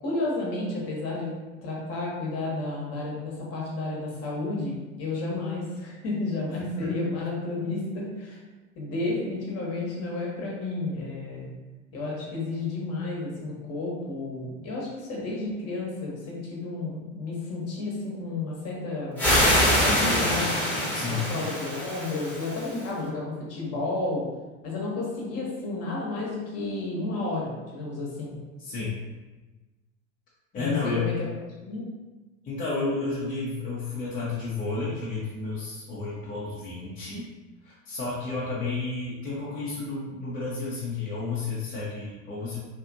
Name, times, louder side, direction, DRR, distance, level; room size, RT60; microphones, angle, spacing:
voice 1, 0.0-1.3 1.6-8.4 8.8-11.5 11.9-19.2 19.8-20.6 21.1-24.3 24.6-28.4 30.6-31.1 31.6-31.9, left 2 dB, 40° left, -4 dB, 1.0 m, -31 dB
sound 1, 19.2-22.8, equal, 5° left, 1.0 m, -24 dB
voice 2, 20.9-21.3 28.6-29.0 30.5-31.1 32.4-37.3 37.6-42.6, left 3 dB, 20° left, -8 dB, 0.6 m, -31 dB
2.7 x 2.4 x 2.4 m, 1.2 s
hypercardioid pair, 90°, 39 cm